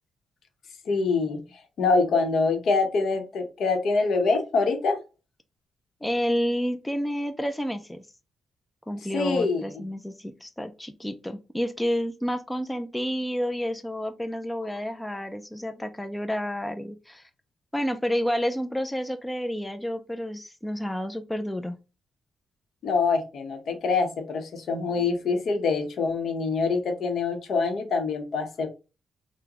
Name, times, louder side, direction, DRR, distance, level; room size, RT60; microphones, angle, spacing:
voice 1, 0.9-1.4 1.8-5.0 9.1-9.7 22.8-28.7, left 4 dB, 70° left, 4 dB, 0.8 m, -25 dB
voice 2, 6.0-8.0 8.9-17.3 17.7-21.8, equal, 10° left, 7 dB, 0.4 m, -30 dB
3.8 x 2.1 x 2.9 m, 0.29 s
cardioid pair, 90°, 0 cm